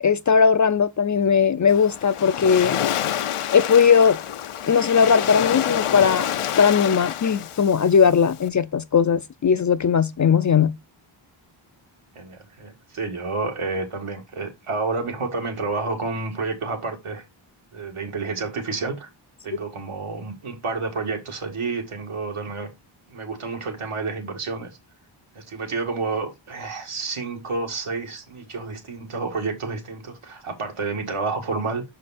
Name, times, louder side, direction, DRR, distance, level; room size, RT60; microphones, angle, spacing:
voice 1, 0.0-2.8 3.5-4.2 4.7-6.3 6.6-10.7, left 6 dB, 40° left, 0.4 m, -18 dB
Waves surf, 1.7-8.5, left 10 dB, 90° left, 0.7 m, -28 dB
voice 2, 12.2-17.2 17.7-19.1 19.4-22.7 23.1-24.7 25.4-31.8, right 3 dB, 80° right, 2.1 m, -29 dB
6.0 x 5.0 x 4.1 m
wide cardioid pair, 110°, 50 cm